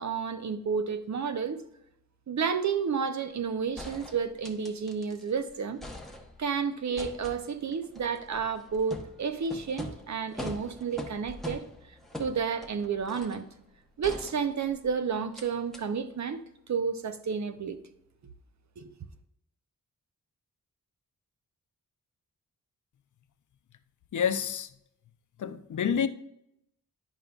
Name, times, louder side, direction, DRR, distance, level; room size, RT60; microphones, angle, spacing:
voice 1, 0.0-1.6 2.3-5.8 6.4-11.6 12.2-13.5 14.0-16.4 16.7-17.8 18.8-18.9, right 6 dB, 55° right, 0.7 m, -31 dB
sound 1, 3.8-5.3 5.6-6.6 7.0-13.5 14.0-14.9 15.3-15.5 15.7-15.8, left 1 dB, ahead, 0.9 m, -43 dB
voice 2, 24.1-24.7 25.4-26.1, left 7 dB, 60° left, 0.5 m, -28 dB
10.5 x 5.1 x 2.4 m
cardioid pair, 75°, 34 cm